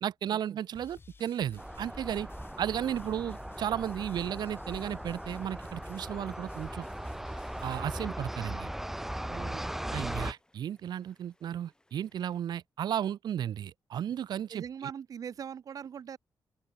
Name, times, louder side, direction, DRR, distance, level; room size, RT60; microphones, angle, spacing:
voice 1, 0.0-2.3 2.6-6.9 7.6-8.7 9.9-14.6, right 10 dB, 85° right, 0.9 m, -34 dB
sound 1, 0.7-7.8, left 4 dB, 30° left, 4.0 m, -53 dB
sound 2, 1.6-10.3, right 1 dB, 5° right, 0.5 m, -39 dB
sound 3, 2.6-12.4, left 1 dB, 10° left, 7.0 m, -69 dB
voice 2, 9.3-9.7 14.5-16.2, right 8 dB, 55° right, 0.8 m, -41 dB
open air
wide cardioid pair, 140°, 7 cm